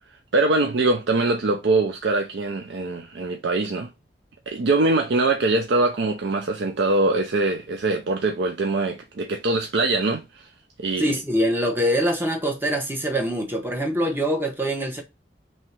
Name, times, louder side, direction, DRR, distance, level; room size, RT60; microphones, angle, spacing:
voice 1, 0.3-3.9 4.5-10.5 10.8-11.1, right 2 dB, 75° right, 0.5 m, -23 dB
voice 2, 11.0-15.0, equal, 10° right, 0.8 m, -24 dB
3.1 x 2.7 x 4.3 m
head